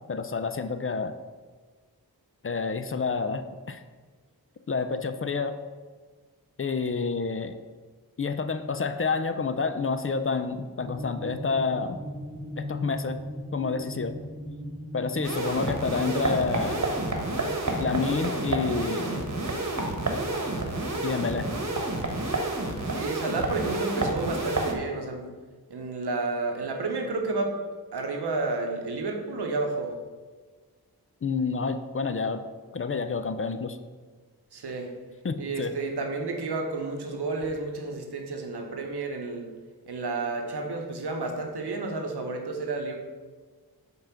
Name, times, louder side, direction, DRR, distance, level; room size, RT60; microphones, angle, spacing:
voice 1, 0.1-1.1 2.4-3.8 4.7-5.6 6.6-7.6 8.2-12.0 12.6-13.2 13.5-14.2 14.9-16.9 17.8-19.2 21.0-21.5 31.2-32.4 32.7-33.8 35.2-35.7, left 4 dB, 35° left, 10 dB, 0.4 m, -29 dB
sound 1, 10.8-21.9, equal, 5° left, 1.4 m, -40 dB
sound 2, 15.2-24.7, right 2 dB, 45° right, 1.1 m, -29 dB
voice 2, 22.9-25.2 25.7-27.5 27.9-29.9 34.5-34.9 35.4-39.4 39.9-43.0, right 3 dB, 90° right, 3 dB, 0.9 m, -31 dB
5.5 x 3.8 x 5.7 m, 1.4 s
cardioid pair, 50°, 38 cm